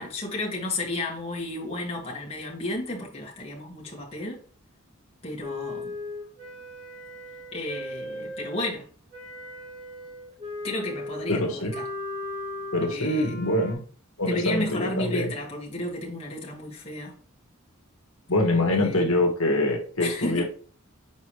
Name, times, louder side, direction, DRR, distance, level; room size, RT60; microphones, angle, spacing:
voice 1, 0.0-4.4 5.2-5.9 7.5-8.9 10.6-11.8 12.9-13.3 14.3-17.1 18.7-19.0 20.0-20.4, left 1 dB, 30° left, 1.8 m, -32 dB
Wind instrument woodwind instrument, 5.4-8.7 9.1-13.7, left 1 dB, 40° right, 3.1 m, -37 dB
voice 2, 11.3-11.7 12.7-13.8 14.2-15.3 18.3-20.4, left 1 dB, 75° left, 1.5 m, -24 dB
7.2 x 4.7 x 3.2 m
head